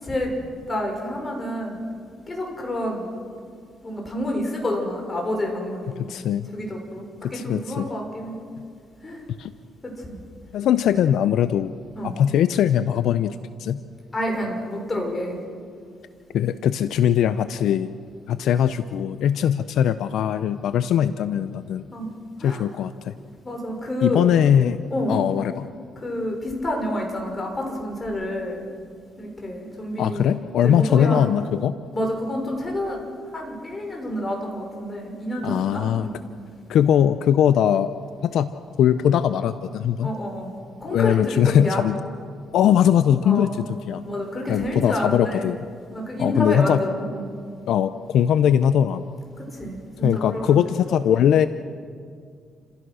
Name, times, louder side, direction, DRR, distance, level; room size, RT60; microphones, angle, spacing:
voice 1, 0.7-1.8 2.3-3.1 3.8-6.1 6.5-8.4 9.0-9.3 9.8-10.2 12.0-12.1 14.1-15.4 21.9-22.1 22.4-22.6 23.4-24.3 24.9-25.2 26.0-28.6 29.2-30.4 30.6-31.3 31.9-33.1 33.3-36.2 40.0-40.5 40.8-41.8 43.2-43.5 44.0-45.5 45.9-47.3 49.4-50.6, left 1 dB, 25° left, 1 dB, 6.0 m, -29 dB
voice 2, 6.0-6.5 7.2-7.9 9.4-9.5 10.5-11.7 12.0-13.8 16.3-17.9 18.3-21.8 22.4-23.1 24.0-24.8 25.1-25.7 30.0-31.7 35.4-36.1 36.7-37.9 38.2-38.5 38.8-40.1 40.9-42.0 42.5-43.5 43.9-44.0 44.5-45.6 46.2-46.8 47.7-49.0 50.0-51.5, left 9 dB, 75° left, 12 dB, 0.6 m, -20 dB
29.0 x 15.5 x 6.4 m, 2.2 s
cardioid pair, 90°, 0 cm